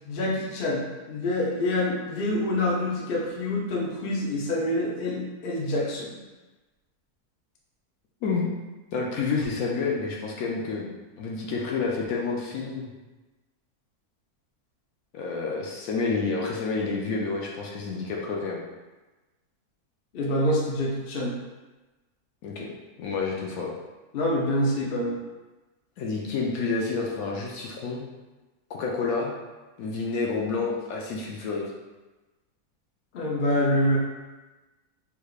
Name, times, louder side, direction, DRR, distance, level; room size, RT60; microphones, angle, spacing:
voice 1, 0.1-6.2 20.1-21.3 24.1-25.2 33.1-34.0, left 1 dB, 55° left, -3 dB, 0.6 m, -26 dB
voice 2, 8.2-8.5 8.9-10.9 11.2-12.9 15.1-18.6 22.4-22.7 23.0-23.7 26.0-28.0 28.7-29.3 29.8-31.6, left 4 dB, 70° left, -2 dB, 1.0 m, -29 dB
3.5 x 3.2 x 2.3 m, 1.2 s
omnidirectional pair, 1.6 m